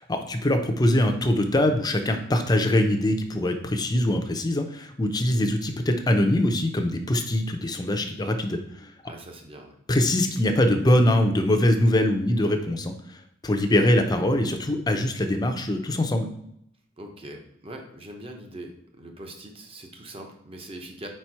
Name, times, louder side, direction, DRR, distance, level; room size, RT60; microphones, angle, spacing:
voice 1, 0.1-8.9 9.9-12.9 13.4-16.3, left 1 dB, 20° left, 5 dB, 0.6 m, -23 dB
voice 2, 9.0-9.7 17.0-21.1, right 1 dB, 30° right, 3 dB, 0.9 m, -42 dB
4.7 x 4.4 x 4.6 m, 0.74 s
head